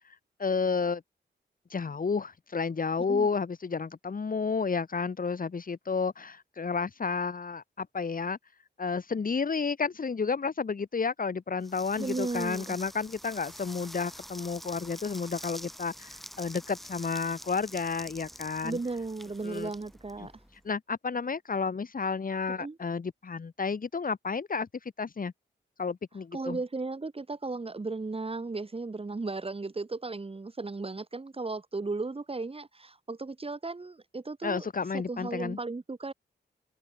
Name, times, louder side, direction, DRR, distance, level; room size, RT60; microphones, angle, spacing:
voice 1, 0.4-1.0 1.7-8.4 8.8-18.8 19.4-19.7 20.2-20.3 20.6-24.7 25.0-25.3 25.8-26.6 34.4-35.6, left 5 dB, 50° left, 3.0 m, -31 dB
sound 1, 11.6-20.6, equal, ahead, 7.8 m, -46 dB
voice 2, 12.0-12.8 18.6-20.3 22.5-22.8 26.3-34.7 34.9-36.1, right 3 dB, 30° right, 2.7 m, -35 dB
cardioid pair, 70°, 19 cm